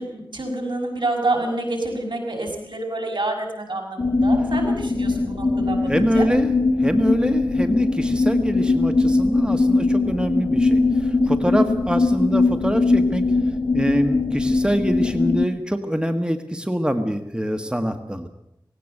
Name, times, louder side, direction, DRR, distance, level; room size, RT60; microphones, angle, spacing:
voice 1, 0.0-6.3, right 2 dB, 75° right, 2 dB, 5.9 m, -28 dB
sound 1, 4.0-15.5, left 3 dB, 90° left, 1.1 m, -20 dB
voice 2, 5.9-6.5 6.8-13.3 13.7-18.3, equal, 10° right, 7 dB, 1.6 m, -24 dB
19.0 x 17.0 x 8.0 m, 0.81 s
wide cardioid pair, 50°, 8 cm